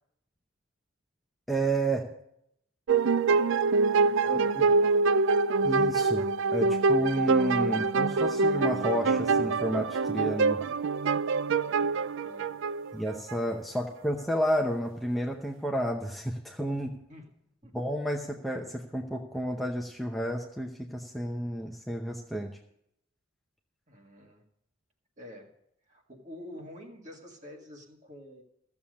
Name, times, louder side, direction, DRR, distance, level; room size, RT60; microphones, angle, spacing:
voice 1, 1.5-2.1 4.3-4.6 5.6-6.2 6.5-10.6 12.9-16.9 17.7-22.5, right 1 dB, ahead, 0 dB, 0.7 m, -31 dB
sound 1, 2.9-13.4, right 4 dB, 65° right, 0.4 m, -25 dB
voice 2, 4.0-4.9 11.5-12.5 17.1-17.3 17.6-17.7 23.9-24.4 25.2-25.5 25.9-28.4, left 1 dB, 35° right, 2 dB, 1.8 m, -48 dB
14.5 x 7.2 x 6.4 m, 0.76 s
head